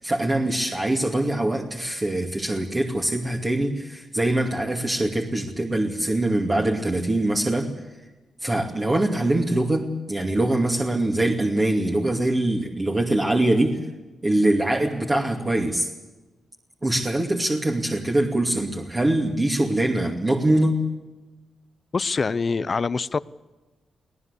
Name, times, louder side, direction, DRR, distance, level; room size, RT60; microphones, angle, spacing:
voice 1, 0.0-7.7 8.4-13.8 14.2-15.9 16.8-20.8, right 1 dB, 25° right, 2.5 m, -23 dB
voice 2, 21.9-23.2, left 4 dB, 40° left, 0.7 m, -24 dB
24.5 x 17.5 x 8.3 m
cardioid pair, 100°, 0 cm